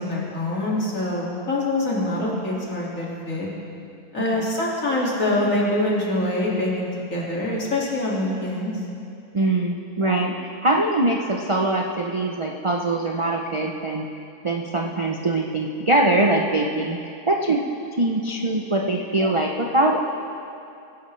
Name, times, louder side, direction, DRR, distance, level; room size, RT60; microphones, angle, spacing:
voice 1, 0.0-3.5 4.1-8.7, left 1 dB, 60° left, -5 dB, 2.7 m, -25 dB
voice 2, 9.3-14.1 14.4-17.6 18.0-20.0, right 2 dB, 45° right, 0 dB, 0.4 m, -23 dB
20.5 x 11.0 x 3.3 m, 2.6 s
omnidirectional pair, 1.6 m